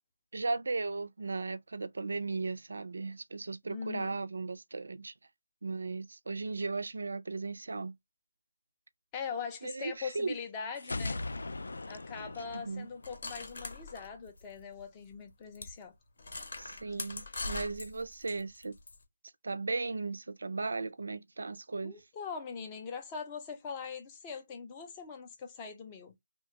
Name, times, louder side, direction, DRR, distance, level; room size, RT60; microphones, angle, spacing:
voice 1, 0.3-5.1 5.6-7.9 9.6-10.3 12.5-12.9 16.6-18.7 19.4-22.0, right 3 dB, 65° right, 0.3 m, -36 dB
voice 2, 3.7-4.2 9.1-11.2 11.9-15.9 21.8-26.1, left 6 dB, 10° left, 0.4 m, -41 dB
sound 1, 10.8-13.6, left 2 dB, 75° left, 0.4 m, -39 dB
sound 2, 13.0-14.8 15.1-15.2 15.6-15.7 16.2-19.0, left 3 dB, 45° left, 0.7 m, -42 dB
3.1 x 2.2 x 2.8 m
hypercardioid pair, 175°, 0 cm